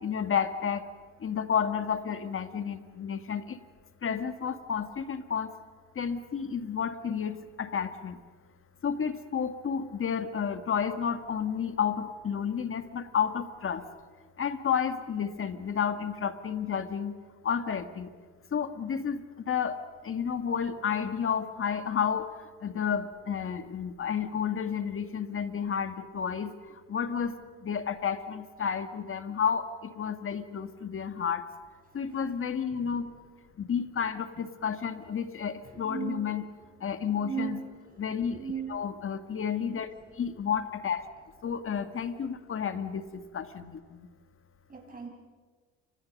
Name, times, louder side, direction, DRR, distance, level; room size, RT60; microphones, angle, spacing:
voice 1, 0.0-0.9 1.2-3.6 4.0-5.5 6.0-8.2 8.8-13.9 14.4-17.1 17.4-18.1 18.5-22.3 22.6-31.5 31.9-33.1 33.6-36.4 36.8-37.6 38.0-38.4 38.7-41.0 41.4-44.1, left 7 dB, 45° left, 9 dB, 2.0 m, -31 dB
voice 2, 35.7-36.2 37.2-37.6 37.9-38.0 38.3-38.7 44.7-45.1, right 7 dB, 30° right, 1 dB, 6.8 m, -36 dB
29.5 x 25.5 x 5.5 m, 1.5 s
cardioid pair, 85°, 30 cm